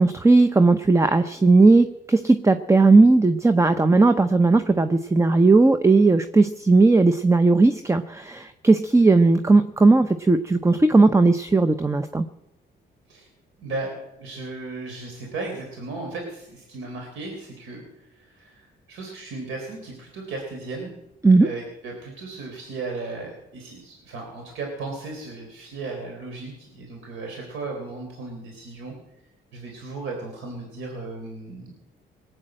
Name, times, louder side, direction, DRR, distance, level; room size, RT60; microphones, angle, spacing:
voice 1, 0.0-12.3 21.2-21.5, right 3 dB, 15° right, 10 dB, 0.7 m, -17 dB
voice 2, 13.6-21.0 21.4-28.9 29.5-31.7, right 3 dB, 85° right, 1 dB, 3.7 m, -35 dB
20.0 x 9.0 x 7.6 m, 0.92 s
cardioid pair, 90°, 20 cm